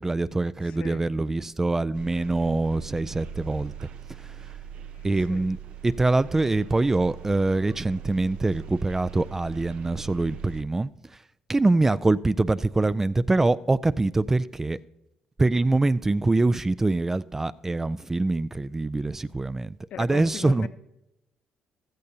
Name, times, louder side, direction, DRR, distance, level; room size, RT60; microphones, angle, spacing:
voice 1, 0.0-3.9 4.2-4.4 5.0-5.6 5.8-11.2 11.5-14.8 15.4-20.7, right 2 dB, 20° right, 0.3 m, -24 dB
voice 2, 0.6-1.1 4.9-5.5 19.9-20.7, left 7 dB, 70° left, 0.9 m, -39 dB
sound 1, 1.9-10.6, right 9 dB, 65° right, 0.7 m, -42 dB
15.5 x 13.5 x 2.7 m
cardioid pair, 80°, 2 cm